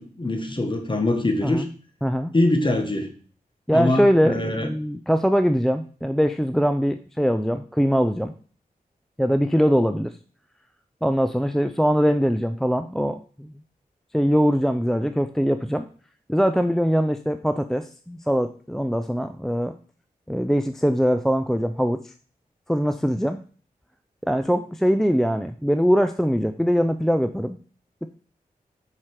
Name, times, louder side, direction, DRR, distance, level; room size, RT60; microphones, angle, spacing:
voice 1, 0.0-1.6 2.3-3.1 3.7-4.7, left 2 dB, 30° left, 5 dB, 1.6 m, -23 dB
voice 2, 2.0-2.3 3.7-8.3 9.2-10.1 11.0-13.5 14.1-15.9 16.3-19.7 20.3-22.1 22.7-23.4 24.2-27.6 28.0-28.1, equal, 5° left, 9 dB, 0.4 m, -22 dB
5.8 x 4.4 x 4.8 m, 0.42 s
cardioid pair, 45°, 16 cm